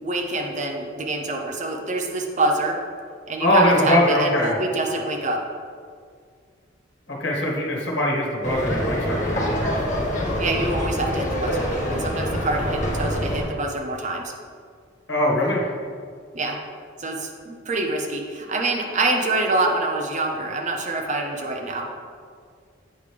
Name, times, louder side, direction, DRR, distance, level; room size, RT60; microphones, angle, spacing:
voice 1, 0.0-2.8 3.3-5.4 10.4-14.3 16.3-16.6 17.0-21.9, right 2 dB, 40° right, 2 dB, 0.8 m, -26 dB
voice 2, 3.4-4.5 7.1-9.7 15.1-15.6, left 1 dB, 60° left, -3 dB, 1.6 m, -21 dB
sound 1, 8.4-13.4, equal, 40° left, 1.3 m, -25 dB
8.6 x 5.1 x 3.4 m, 2.1 s
head